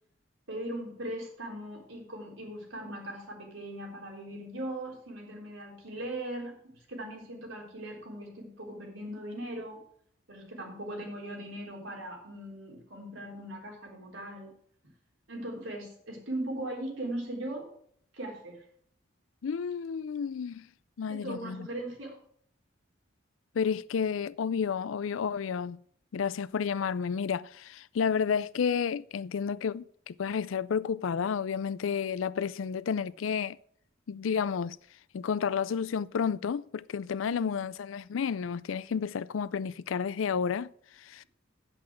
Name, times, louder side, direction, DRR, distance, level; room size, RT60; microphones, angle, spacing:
voice 1, 0.5-9.8 10.3-14.5 15.3-17.7 18.1-18.7 21.1-22.2 37.2-37.5, right 1 dB, 85° right, 3.8 m, -39 dB
voice 2, 19.4-20.6 21.0-21.7 23.5-25.8 26.1-33.6 34.1-34.8 35.1-40.7 41.0-41.2, left 6 dB, 85° left, 0.4 m, -31 dB
8.5 x 7.8 x 6.2 m
head